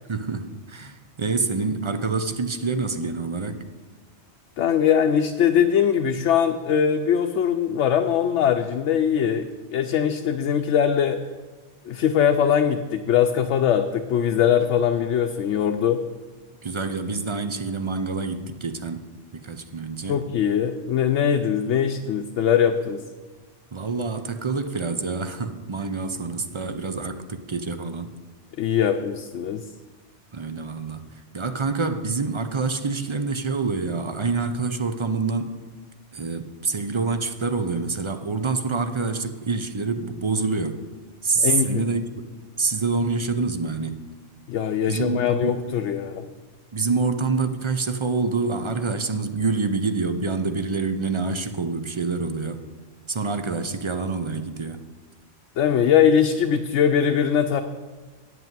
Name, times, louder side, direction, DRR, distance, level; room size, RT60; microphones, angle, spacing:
voice 1, 0.1-3.6 16.6-19.1 19.3-20.2 23.7-28.1 30.3-31.0 31.3-35.6 36.1-40.8 41.2-42.3 42.6-44.0 44.9-45.6 46.7-52.6 53.1-54.8, right 4 dB, 30° right, 9 dB, 0.6 m, -26 dB
voice 2, 4.6-11.2 11.9-16.0 20.1-23.0 28.6-29.6 41.4-41.8 44.5-46.3 55.6-57.6, left 8 dB, 85° left, 5 dB, 0.9 m, -21 dB
9.5 x 8.2 x 7.5 m, 1.3 s
omnidirectional pair, 1.2 m